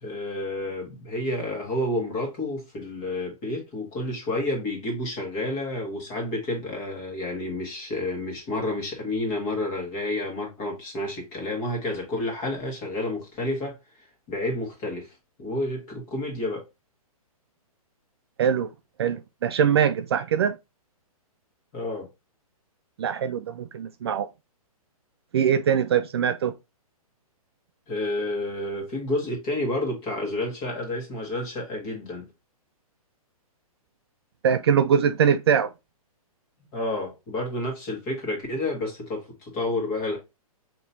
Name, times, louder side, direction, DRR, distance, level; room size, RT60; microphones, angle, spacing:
voice 1, 0.0-13.8 14.3-15.1 15.4-16.6 21.7-22.1 27.9-32.3 36.7-40.2, left 1 dB, 25° left, 1.6 m, -30 dB
voice 2, 18.4-18.7 19.0-20.5 23.0-24.3 25.3-26.5 34.4-35.7, right 8 dB, 45° right, 0.4 m, -22 dB
5.1 x 2.9 x 2.7 m
hypercardioid pair, 160°, 19 cm